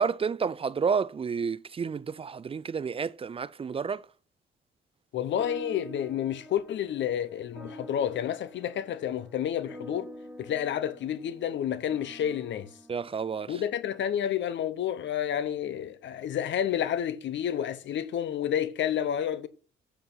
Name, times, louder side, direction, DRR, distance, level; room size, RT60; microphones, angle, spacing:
voice 1, 0.0-4.0 12.9-13.6, right 6 dB, 30° right, 0.4 m, -30 dB
voice 2, 5.1-10.1 10.4-12.7 13.5-19.5, left 10 dB, 65° left, 0.9 m, -30 dB
sound 1, 5.4-14.1, equal, 5° right, 1.8 m, -47 dB
7.7 x 6.3 x 6.2 m
cardioid pair, 90°, 20 cm